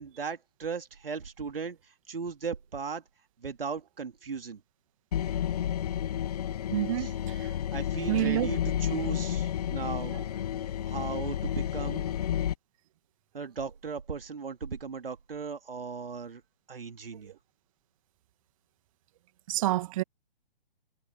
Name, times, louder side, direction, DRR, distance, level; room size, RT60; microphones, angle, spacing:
voice 1, 0.0-3.0 3.4-4.6 7.0-7.1 7.7-10.4 10.9-12.1 13.3-16.4 16.7-17.3, right 5 dB, 70° right, 2.8 m, -37 dB
sound 1, 5.1-12.5, left 10 dB, 40° left, 0.6 m, -31 dB
voice 2, 6.7-7.5 8.1-8.5 10.1-10.2 17.2-17.3 19.5-20.0, right 15 dB, 35° right, 1.9 m, -29 dB
figure-of-eight pair, 130°, 30 cm